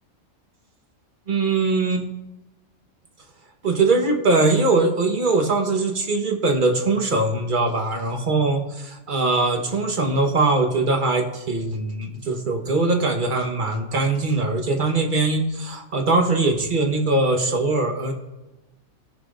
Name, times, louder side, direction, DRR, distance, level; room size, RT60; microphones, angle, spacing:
voice 1, 1.3-2.0 3.6-18.1, right 3 dB, 40° right, 2 dB, 1.3 m, -21 dB
17.5 x 6.0 x 2.5 m, 1.0 s
omnidirectional pair, 1.3 m